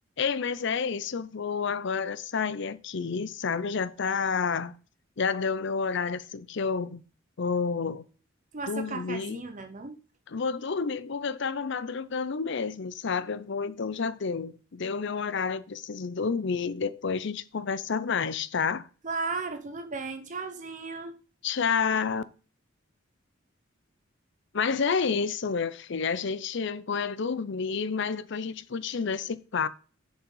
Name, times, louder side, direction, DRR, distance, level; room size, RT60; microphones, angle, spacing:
voice 1, 0.2-4.8 5.2-7.0 7.4-8.0 8.7-9.4 10.3-18.9 21.4-22.2 24.5-29.7, left 5 dB, 65° left, 0.6 m, -29 dB
voice 2, 8.5-10.0 19.0-21.2, right 4 dB, 40° right, 0.8 m, -35 dB
7.0 x 5.4 x 5.4 m
head